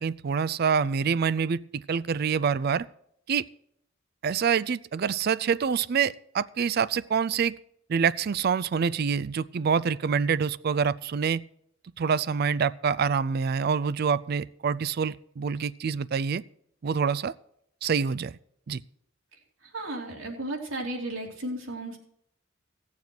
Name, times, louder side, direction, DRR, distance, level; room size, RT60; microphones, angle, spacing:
voice 1, 0.0-2.9 3.3-3.5 4.2-7.5 7.9-11.4 12.0-16.4 16.8-17.3 17.8-18.4 18.7-18.8, right 6 dB, 50° right, 19 dB, 0.4 m, -26 dB
voice 2, 19.6-22.0, right 1 dB, 85° right, -1 dB, 3.2 m, -34 dB
16.5 x 7.2 x 6.1 m, 0.72 s
head